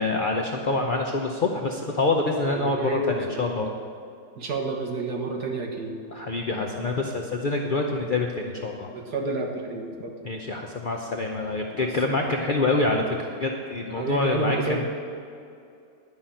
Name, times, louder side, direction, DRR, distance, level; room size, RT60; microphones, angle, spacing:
voice 1, 0.0-3.7 6.1-8.9 10.2-14.8, left 2 dB, 70° left, 1 dB, 0.4 m, -26 dB
voice 2, 2.4-3.4 4.4-5.9 7.4-7.5 8.9-10.2 11.8-12.3 14.0-14.9, right 2 dB, 70° right, 1 dB, 1.9 m, -30 dB
11.0 x 5.7 x 8.8 m, 2.5 s
omnidirectional pair, 1.9 m